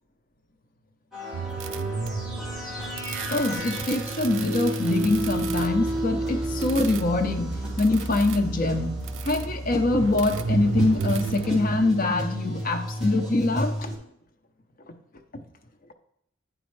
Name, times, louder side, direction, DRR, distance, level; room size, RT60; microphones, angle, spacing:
sound 1, 1.1-14.0, right 1 dB, 5° right, 1.7 m, -32 dB
sound 2, 1.3-11.9, right 5 dB, 85° right, 0.4 m, -34 dB
voice 1, 3.3-13.9, left 2 dB, 45° left, 0.6 m, -24 dB
9.1 x 4.2 x 3.2 m
head